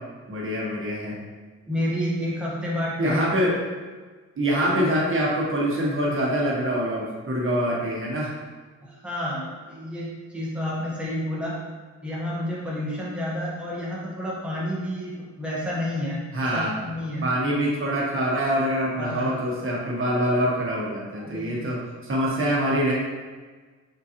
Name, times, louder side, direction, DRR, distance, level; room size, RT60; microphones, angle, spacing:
voice 1, 0.3-1.1 3.0-3.6 4.4-8.3 16.3-16.8 17.2-22.9, equal, 45° right, -4 dB, 1.1 m, -25 dB
voice 2, 1.7-3.3 8.8-11.6 12.0-16.2 16.5-17.3 19.0-19.4 21.2-21.7, left 1 dB, 5° right, -6 dB, 1.0 m, -30 dB
3.9 x 3.8 x 2.8 m, 1.4 s
cardioid pair, 105°, 30 cm